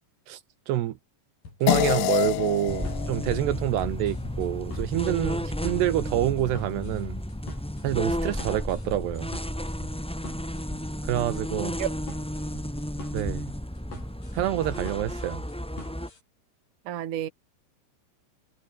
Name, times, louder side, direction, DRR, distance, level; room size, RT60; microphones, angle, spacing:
voice 1, 0.7-1.0 1.6-7.2 7.8-9.3 11.1-11.8 13.1-13.4 14.3-15.4, right 13 dB, 80° right, 3.4 m, -27 dB
sound 1, 1.4-16.2, left 4 dB, 50° left, 8.9 m, -46 dB
sound 2, 1.7-6.4, left 23 dB, 85° left, 2.6 m, -30 dB
sound 3, 2.7-16.1, equal, ahead, 1.2 m, -33 dB
voice 2, 11.6-12.0 16.9-17.3, right 12 dB, 55° right, 3.1 m, -31 dB
omnidirectional pair, 4.8 m